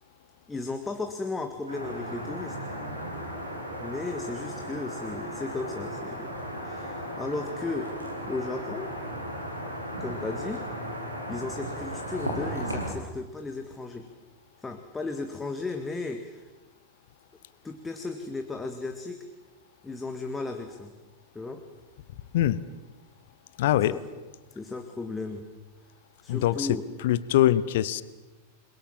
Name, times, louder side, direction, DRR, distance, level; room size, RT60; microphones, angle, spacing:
voice 1, 0.5-2.6 3.8-6.3 6.6-8.0 8.3-8.9 10.0-10.7 11.3-14.1 14.6-16.4 17.6-19.3 19.8-20.9 21.3-21.6 23.7-24.0 24.5-25.5 26.2-26.8, left 3 dB, 10° left, 5 dB, 2.0 m, -35 dB
sound 1, 1.7-12.9, equal, 85° right, 5.8 m, -35 dB
voice 2, 23.6-23.9 26.3-26.8 27.0-28.0, left 13 dB, 55° left, 17 dB, 1.1 m, -23 dB
28.5 x 22.0 x 7.5 m, 1.2 s
figure-of-eight pair, 90°, 0 cm